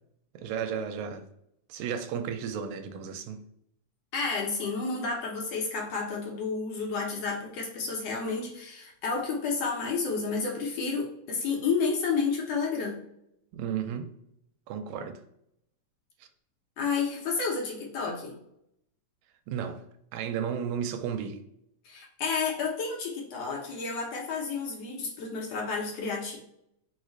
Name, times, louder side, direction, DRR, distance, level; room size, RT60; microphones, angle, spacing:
voice 1, 0.3-1.3 1.7-3.4 13.5-14.1 14.7-15.2 19.5-19.8 20.1-21.4, right 7 dB, 85° right, 1.9 m, -33 dB
voice 2, 4.1-13.0 16.8-18.3 21.9-26.4, left 4 dB, 65° left, 1.9 m, -31 dB
4.6 x 2.4 x 4.5 m
omnidirectional pair, 3.3 m